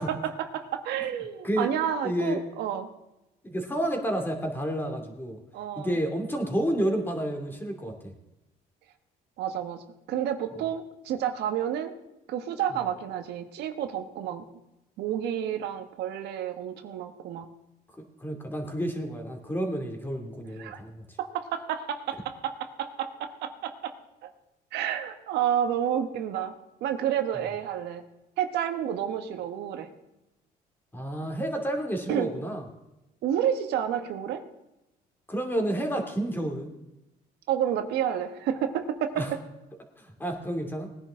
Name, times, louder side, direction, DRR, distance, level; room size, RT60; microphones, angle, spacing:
voice 1, 0.0-2.9 5.5-5.9 9.4-9.8 10.1-11.9 12.3-14.4 15.0-17.5 20.6-20.8 21.2-23.9 24.2-24.3 24.7-26.5 26.8-28.0 28.4-29.9 32.1-32.3 33.2-34.4 37.5-39.2, right 9 dB, 80° right, 7 dB, 1.3 m, -30 dB
voice 2, 1.4-1.7 2.0-2.4 3.4-5.4 5.8-8.1 18.0-21.0 30.9-32.6 35.3-36.7 39.2-39.3 40.0-40.9, right 1 dB, 10° left, 3 dB, 2.7 m, -30 dB
19.5 x 10.0 x 3.7 m, 0.93 s
cardioid pair, 110°, 17 cm